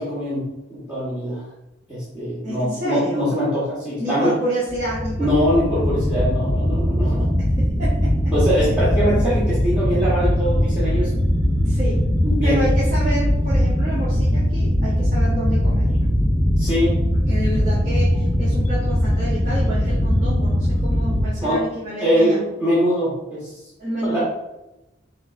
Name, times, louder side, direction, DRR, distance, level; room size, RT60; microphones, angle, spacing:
voice 1, 0.0-1.4 1.9-4.3 5.2-7.3 8.3-11.1 12.2-12.6 16.6-16.9 21.4-21.6 22.0-23.6 24.0-24.2, equal, 10° right, -10 dB, 1.2 m, -22 dB
voice 2, 2.4-3.2 4.0-5.3 7.4-7.5 7.8-8.1 11.6-12.1 12.4-16.1 17.1-22.4 23.8-24.2, right 1 dB, 45° right, -9 dB, 1.1 m, -29 dB
sound 1, 4.7-21.3, equal, 10° left, 0.6 m, -20 dB
5.7 x 3.1 x 2.5 m, 0.97 s
head